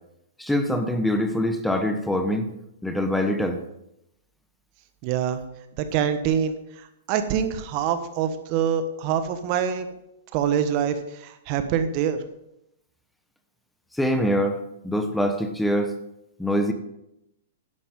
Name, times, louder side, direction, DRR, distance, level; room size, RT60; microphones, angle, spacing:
voice 1, 0.4-2.5 2.8-3.6 13.9-14.6 14.8-15.9 16.4-16.7, equal, 5° left, 7 dB, 1.1 m, -24 dB
voice 2, 5.0-5.4 5.8-9.9 10.3-12.2, right 8 dB, 45° right, 9 dB, 1.2 m, -25 dB
12.5 x 11.0 x 3.7 m, 0.83 s
hypercardioid pair, 120°, 0 cm